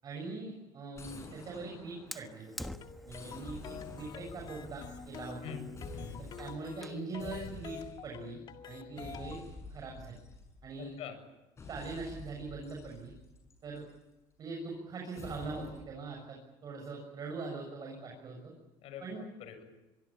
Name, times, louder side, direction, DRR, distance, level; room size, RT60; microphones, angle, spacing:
voice 1, 0.0-2.5 3.0-5.6 6.2-7.8 8.0-9.4 9.7-10.2 10.6-11.0 11.7-13.1 13.6-13.9 14.4-18.5 19.0-19.2, right 3 dB, 35° right, 0 dB, 6.9 m, -42 dB
sound 1, 0.9-2.5 3.1-5.4 5.8-6.6 7.2-8.2 9.0-10.8 11.6-14.0 15.2-15.9, left 3 dB, 25° left, 7.4 m, -49 dB
Fire, 2.1-7.1, equal, ahead, 1.3 m, -49 dB
sound 2, 2.6-9.5, left 8 dB, 40° left, 2.1 m, -48 dB
voice 2, 5.4-6.2 10.8-11.2 18.8-19.6, left 7 dB, 55° left, 8 dB, 7.4 m, -45 dB
25.0 x 23.5 x 8.9 m, 1.0 s
cardioid pair, 140°, 11 cm